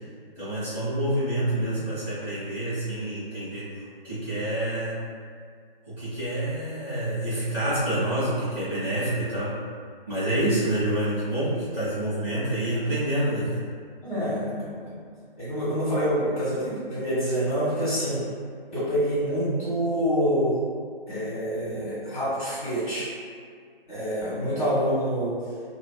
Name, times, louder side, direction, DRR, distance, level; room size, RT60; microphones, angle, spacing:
voice 1, 0.3-3.7 4.0-5.0 5.9-9.6 10.1-13.6, right 1 dB, 5° right, -22 dB, 0.5 m, -27 dB
voice 2, 1.5-1.8 14.0-15.0 15.4-18.2 18.7-20.6 21.1-23.1 23.9-25.3, equal, 55° left, -11 dB, 1.4 m, -27 dB
2.9 x 2.1 x 2.2 m, 2.1 s
figure-of-eight pair, 145°, 30 cm